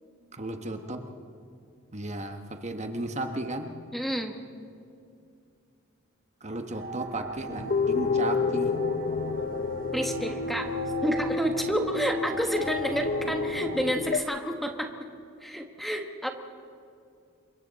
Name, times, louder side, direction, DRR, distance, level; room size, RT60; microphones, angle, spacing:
voice 1, 0.3-1.1 1.9-3.7 6.4-8.8, right 2 dB, 35° right, 6 dB, 1.2 m, -34 dB
voice 2, 3.9-4.4 9.9-10.7 11.0-14.9 15.4-16.3, equal, ahead, 4 dB, 1.3 m, -29 dB
sound 1, 6.7-13.9, right 3 dB, 50° right, 2.2 m, -41 dB
sound 2, 7.5-14.2, left 4 dB, 45° left, 0.6 m, -30 dB
27.5 x 23.5 x 4.1 m, 2.4 s
head